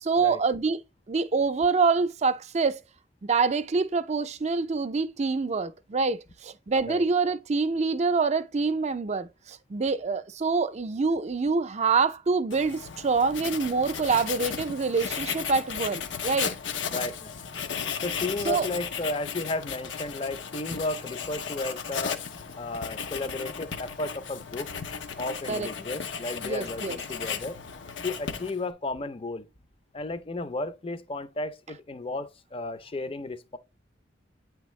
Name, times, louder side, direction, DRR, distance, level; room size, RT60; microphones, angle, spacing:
voice 1, 0.0-0.8 1.1-2.8 3.2-16.5 18.4-18.7 25.5-25.7 26.4-27.0, right 4 dB, 40° right, 0.5 m, -26 dB
Writing, 12.5-28.7, left 7 dB, 85° left, 0.8 m, -35 dB
voice 2, 16.9-17.4 18.0-22.2 22.6-24.7 25.2-27.6 28.0-29.5 29.9-33.6, left 2 dB, 30° left, 0.6 m, -33 dB
8.8 x 3.4 x 3.1 m
head